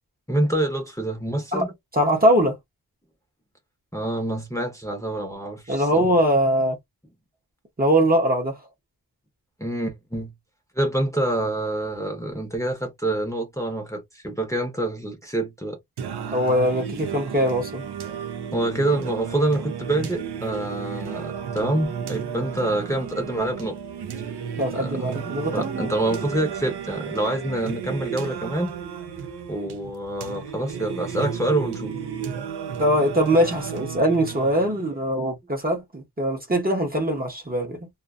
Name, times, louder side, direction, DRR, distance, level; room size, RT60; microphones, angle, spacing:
voice 1, 0.3-1.7 3.9-6.1 9.6-10.3 10.8-15.8 16.3-16.4 18.5-23.8 24.6-25.2 25.5-28.8 29.5-32.0, right 1 dB, 10° left, 0.8 m, -26 dB
voice 2, 1.9-2.5 5.7-6.8 7.8-8.6 16.3-17.8 24.6-25.9 32.8-37.9, equal, 25° right, 0.8 m, -22 dB
Singing, 16.0-35.0, right 7 dB, 75° right, 0.6 m, -33 dB
2.4 x 2.3 x 2.4 m
wide cardioid pair, 140°, 39 cm